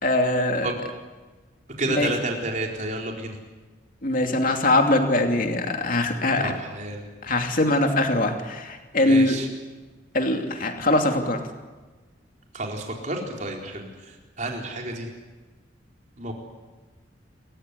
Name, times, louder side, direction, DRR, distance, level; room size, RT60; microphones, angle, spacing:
voice 1, 0.0-0.7 1.9-2.1 4.0-6.5 7.2-9.4 10.1-11.4, left 2 dB, 45° left, 4 dB, 2.8 m, -22 dB
voice 2, 1.8-3.4 6.4-7.0 9.0-9.5 12.5-13.9 14.4-15.1 16.2-16.3, right 2 dB, 40° right, 1 dB, 4.2 m, -30 dB
29.0 x 15.0 x 9.9 m, 1.3 s
head